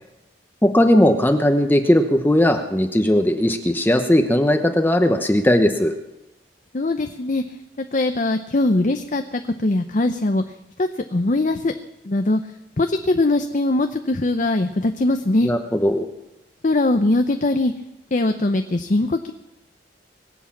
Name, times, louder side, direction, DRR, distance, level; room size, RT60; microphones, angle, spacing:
voice 1, 0.6-5.9 15.4-16.1, left 1 dB, 10° left, 5 dB, 0.9 m, -18 dB
voice 2, 6.7-7.6 7.9-10.4 10.8-11.7 12.0-12.4 12.8-15.5 16.6-17.7 18.1-19.3, left 2 dB, 45° left, 7 dB, 0.7 m, -21 dB
22.5 x 8.2 x 7.2 m, 0.94 s
head